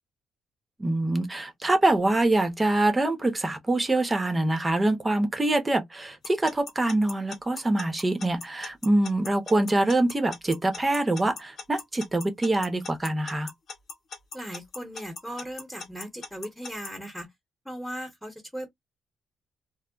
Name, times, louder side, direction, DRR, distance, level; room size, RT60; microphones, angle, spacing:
voice 1, 0.8-13.5, right 2 dB, 20° right, 0.9 m, -24 dB
Alarm / Clock, 6.2-16.9, left 4 dB, 55° left, 1.0 m, -39 dB
voice 2, 14.3-17.3 17.6-18.7, equal, ahead, 1.1 m, -37 dB
2.1 x 2.1 x 3.7 m
cardioid pair, 90°, 0 cm